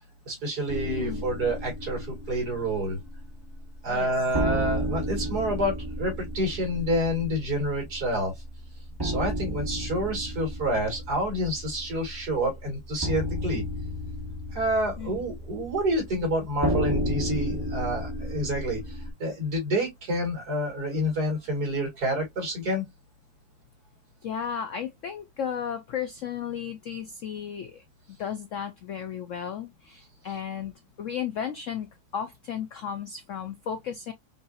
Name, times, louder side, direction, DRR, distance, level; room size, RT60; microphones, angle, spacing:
voice 1, 0.3-3.0 3.8-8.3 9.0-13.6 14.5-22.9, equal, 55° right, 2.7 m, -28 dB
sound 1, 0.7-3.5 3.8-3.9 4.3-19.1, equal, 15° right, 1.0 m, -32 dB
voice 2, 0.8-1.2 3.9-4.1 15.0-15.2 24.2-30.7 31.0-31.9 32.1-34.1, left 8 dB, 85° left, 0.6 m, -34 dB
5.4 x 2.6 x 2.4 m
omnidirectional pair, 2.0 m